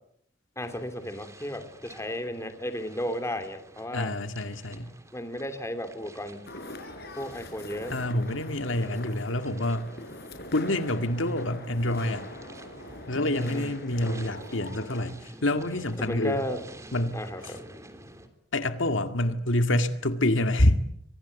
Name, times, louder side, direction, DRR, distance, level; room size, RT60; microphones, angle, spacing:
voice 1, 0.6-4.1 5.1-6.5 7.2-8.0 13.3-13.7 16.0-16.6 17.1-17.6, equal, 15° left, 8 dB, 2.7 m, -34 dB
sound 1, 0.6-18.3, right 1 dB, 15° right, 3.4 m, -50 dB
voice 2, 3.9-4.9 7.9-9.9 10.5-12.3 13.1-16.4 16.9-17.2 17.4-17.5 18.5-20.8, left 1 dB, 70° left, 8 dB, 2.1 m, -27 dB
sound 2, 6.5-15.1, left 1 dB, 55° left, 5.6 m, -42 dB
29.0 x 24.5 x 8.3 m, 0.72 s
head